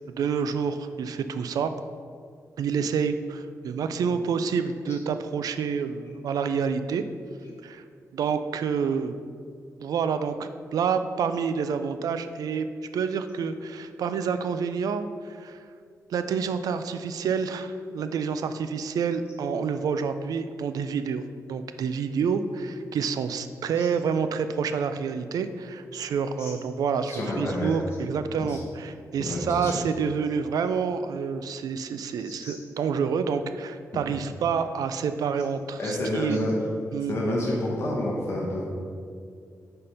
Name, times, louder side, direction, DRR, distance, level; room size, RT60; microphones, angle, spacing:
voice 1, 0.1-1.7 2.6-7.0 7.6-7.8 8.1-9.2 9.8-12.7 12.9-15.6 16.1-21.2 21.5-36.4 36.9-37.2, right 6 dB, 85° right, 10 dB, 0.3 m, -28 dB
voice 2, 27.1-27.7 28.4-28.6 29.2-29.8 32.4-32.5 35.8-36.7 37.1-38.7, left 1 dB, 45° left, -4 dB, 0.9 m, -29 dB
5.0 x 4.4 x 5.5 m, 2.2 s
wide cardioid pair, 170°, 6 cm